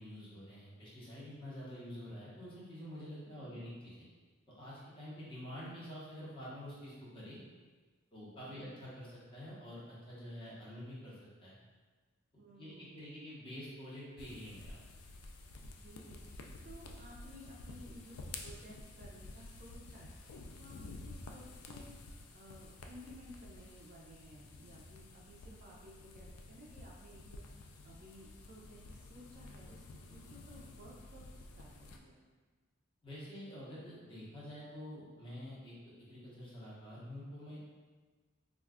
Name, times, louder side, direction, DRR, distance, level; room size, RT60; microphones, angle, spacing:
voice 1, 0.0-4.1 4.6-7.4 8.1-11.1 11.4-11.6 12.3-14.8 33.0-35.7 36.1-37.6, equal, 25° left, -8 dB, 0.8 m, -47 dB
voice 2, 3.3-3.6 8.4-8.7 12.4-13.3 15.6-18.2 18.4-21.9 22.3-27.4 27.8-29.8 30.1-32.2, equal, 40° right, -3 dB, 0.4 m, -56 dB
sound 1, 14.2-32.0, left 2 dB, 90° left, 0.3 m, -51 dB
2.4 x 2.2 x 3.4 m, 1.4 s
head